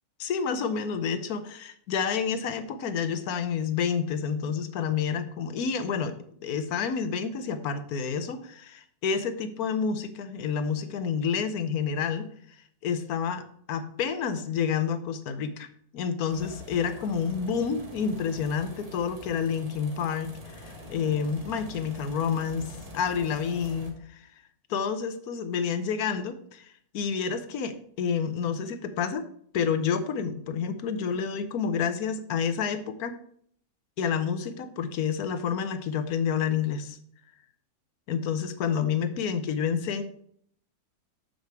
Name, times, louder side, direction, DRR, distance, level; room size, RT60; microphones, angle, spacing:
voice 1, 0.2-6.1 6.4-12.3 12.8-13.4 13.7-15.7 15.9-24.2 24.7-29.2 29.5-33.2 34.0-37.0 38.1-40.0, left 6 dB, 75° left, 10 dB, 1.3 m, -29 dB
sound 1, 16.3-23.9, equal, 25° right, 1.3 m, -45 dB
6.8 x 6.5 x 4.6 m, 0.62 s
omnidirectional pair, 1.6 m